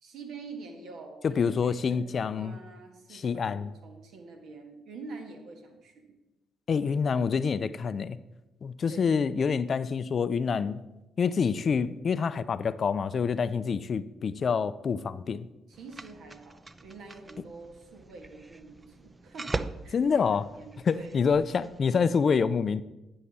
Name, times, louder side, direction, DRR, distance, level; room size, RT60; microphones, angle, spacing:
voice 1, 0.0-6.1 8.9-9.2 15.7-21.2, right 4 dB, 70° right, 3 dB, 1.5 m, -46 dB
voice 2, 1.2-2.6 3.1-3.7 6.7-8.2 8.6-10.8 11.2-15.5 19.9-20.5 20.9-22.8, left 6 dB, 50° left, 16 dB, 0.4 m, -27 dB
sound 1, 15.7-21.8, right 2 dB, 25° right, 0.4 m, -41 dB
10.0 x 5.6 x 4.1 m, 1.0 s
hypercardioid pair, 50°, 0 cm